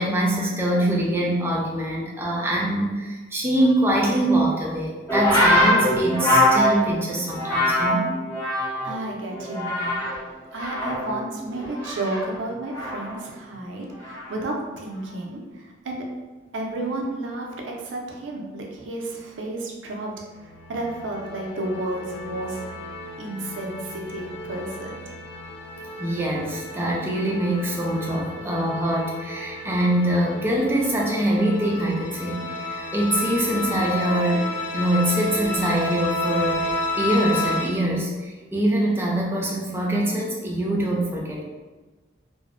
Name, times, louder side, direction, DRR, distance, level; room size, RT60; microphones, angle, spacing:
voice 1, 0.0-8.1 26.0-34.4 34.7-41.4, right 1 dB, 10° right, -3 dB, 0.4 m, -24 dB
sound 1, 5.1-9.0 9.3-10.2 10.5-13.2 14.0-14.4, left 1 dB, 15° left, 0.7 m, -23 dB
voice 2, 8.8-10.0 10.5-16.0 16.5-20.1 20.7-22.6 23.2-24.9, right 2 dB, 85° right, 0 dB, 0.5 m, -32 dB
sound 2, 20.3-37.7, left 2 dB, 70° left, 0.3 m, -32 dB
2.5 x 2.0 x 2.4 m, 1.3 s
head